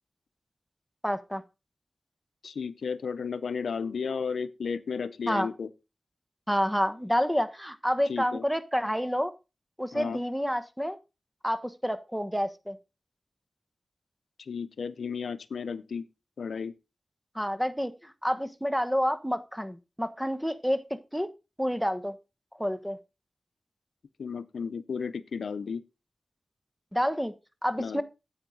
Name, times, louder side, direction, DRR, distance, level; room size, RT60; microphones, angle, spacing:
voice 1, 1.0-1.4 5.3-5.5 6.5-9.3 9.8-11.0 11.4-12.8 17.3-21.3 21.6-22.1 22.6-23.0 26.9-27.3 27.6-28.0, equal, ahead, 1.3 m, -29 dB
voice 2, 2.4-5.7 8.1-8.4 9.9-10.2 14.4-16.1 16.4-16.7 24.2-25.8 27.8-28.0, left 6 dB, 90° left, 0.6 m, -33 dB
10.0 x 8.0 x 3.9 m
cardioid pair, 45°, 0 cm